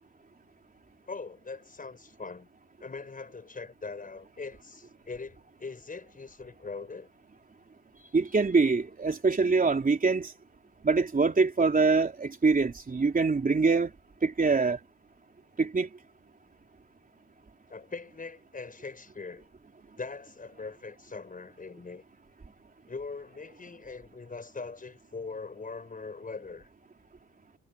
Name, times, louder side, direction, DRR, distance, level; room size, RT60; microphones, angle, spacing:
voice 1, 1.1-2.5 2.8-7.1 17.7-19.5 20.0-22.0 22.9-26.7, left 4 dB, 25° left, 6.5 m, -41 dB
voice 2, 8.1-10.3 10.8-13.9 14.2-14.8 15.6-15.9, right 4 dB, 30° right, 3.5 m, -24 dB
cardioid pair, 90°, 30 cm